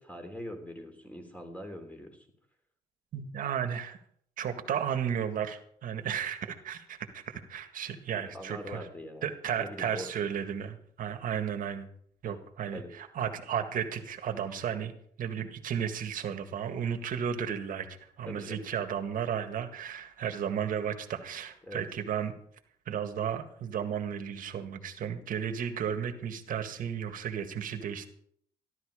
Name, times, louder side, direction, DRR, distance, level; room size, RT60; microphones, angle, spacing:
voice 1, 0.0-2.2 8.1-9.2 9.6-10.1 12.2-12.3 12.7-12.9 18.2-18.6 21.6-21.8, left 1 dB, 10° left, 4 dB, 3.3 m, -42 dB
voice 2, 3.1-4.0 4.4-8.9 9.2-11.9 12.2-14.9 15.2-17.9 18.2-22.3 22.9-28.1, right 8 dB, 55° right, 7 dB, 1.8 m, -34 dB
14.0 x 12.0 x 5.0 m, 0.65 s
cardioid pair, 110°, 17 cm